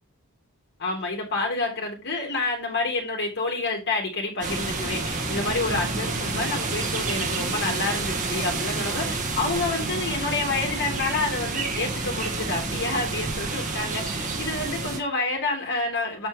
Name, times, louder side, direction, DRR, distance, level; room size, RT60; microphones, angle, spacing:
voice 1, 0.8-16.3, left 3 dB, 50° left, 2.9 m, -28 dB
sound 1, 4.4-15.0, right 3 dB, 35° right, 1.8 m, -29 dB
8.1 x 5.4 x 3.8 m
head